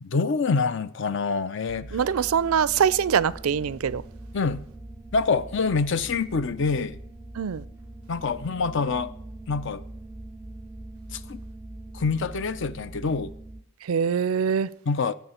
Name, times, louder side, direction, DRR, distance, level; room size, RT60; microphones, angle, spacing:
voice 1, 0.0-2.0 4.3-4.6 5.1-7.0 8.1-9.1 9.5-9.8 11.1-11.4 11.9-13.3 14.9-15.1, left 4 dB, 60° left, 0.5 m, -26 dB
sound 1, 1.7-13.6, right 1 dB, 10° right, 0.5 m, -42 dB
voice 2, 1.9-4.0 7.4-7.6 13.8-14.7, right 7 dB, 90° right, 0.4 m, -23 dB
18.0 x 7.2 x 4.3 m
head